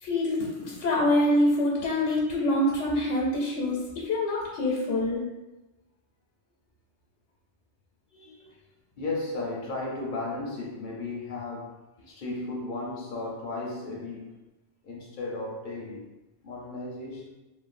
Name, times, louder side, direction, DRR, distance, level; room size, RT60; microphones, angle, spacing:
voice 1, 0.0-5.2, left 1 dB, 85° left, -4 dB, 0.9 m, -25 dB
voice 2, 8.1-8.6 9.0-14.4 14.8-16.1 16.4-17.3, left 2 dB, 55° left, -2 dB, 0.6 m, -35 dB
3.1 x 2.1 x 2.4 m, 1.0 s
omnidirectional pair, 1.2 m